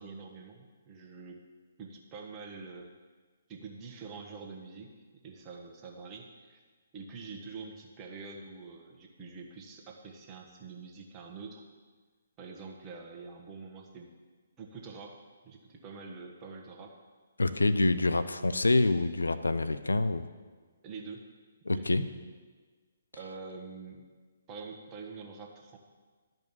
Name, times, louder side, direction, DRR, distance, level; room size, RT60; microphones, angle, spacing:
voice 1, 0.0-1.4 1.8-2.9 3.5-4.9 5.2-6.6 6.9-11.6 12.4-14.1 14.6-17.0 20.8-21.3 21.7-22.0 23.1-24.0 24.5-25.8, right 4 dB, 25° right, 1 dB, 1.3 m, -45 dB
voice 2, 17.4-20.3 21.7-22.0, left 2 dB, 85° left, 12 dB, 0.6 m, -26 dB
12.0 x 5.3 x 7.3 m, 1.4 s
figure-of-eight pair, 135°, 0 cm